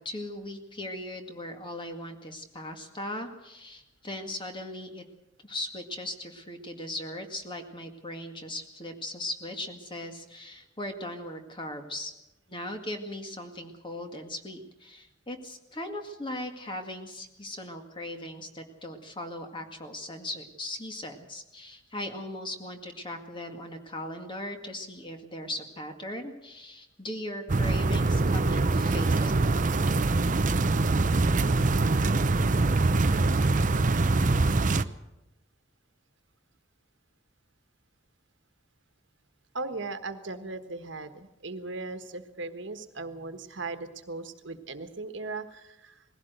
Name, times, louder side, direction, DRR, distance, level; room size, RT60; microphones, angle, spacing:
voice 1, 0.0-5.0 5.4-12.1 12.5-29.3, left 1 dB, 25° left, 5 dB, 2.0 m, -38 dB
sound 1, 27.5-34.8, right 3 dB, 40° right, 0.6 m, -24 dB
voice 2, 39.5-46.0, right 3 dB, 65° right, 9 dB, 1.4 m, -38 dB
20.0 x 16.5 x 8.0 m, 0.94 s
head